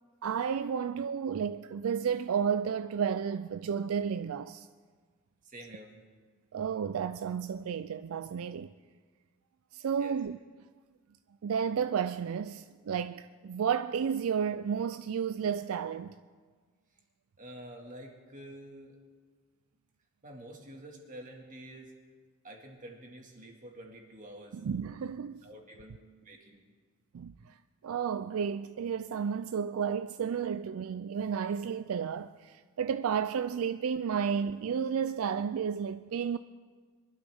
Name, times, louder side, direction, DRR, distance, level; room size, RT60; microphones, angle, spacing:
voice 1, 0.2-4.7 6.5-8.7 9.7-10.4 11.4-16.1 24.5-25.4 27.1-27.5 27.8-36.4, right 7 dB, 75° right, 0.4 m, -32 dB
voice 2, 5.4-6.0 10.0-10.2 17.4-19.0 20.2-21.9 22.4-24.6 25.4-26.6, right 1 dB, 35° right, 2.0 m, -48 dB
23.0 x 12.0 x 3.6 m
head